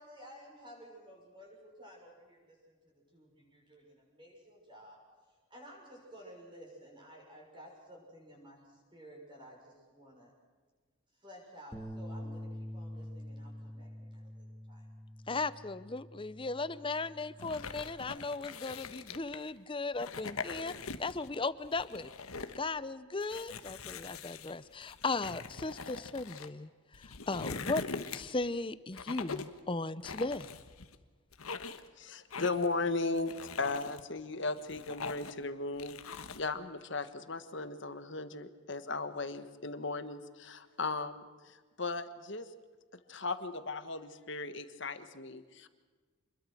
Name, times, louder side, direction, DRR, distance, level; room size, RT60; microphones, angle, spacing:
voice 1, 0.0-5.0 5.3-10.3 11.1-14.9, equal, 20° right, -1 dB, 6.5 m, -54 dB
Bass guitar, 11.7-18.0, equal, ahead, 2.2 m, -46 dB
voice 2, 15.3-20.7 21.0-22.1 22.6-27.8 28.1-30.5, left 3 dB, 25° left, 16 dB, 0.6 m, -37 dB
sound 1, 17.4-19.5 19.9-21.3 21.6-22.6 23.2-26.5 26.9-28.5 28.9-29.6 30.0-31.0 31.3-31.9 32.3-32.8 33.2-34.0 34.5-35.4 35.8-36.5, left 4 dB, 90° left, 1.4 m, -43 dB
voice 3, 32.0-36.0 36.3-42.5 43.1-45.7, left 3 dB, 55° left, 10 dB, 1.4 m, -36 dB
27.0 x 21.5 x 6.5 m, 1.5 s
head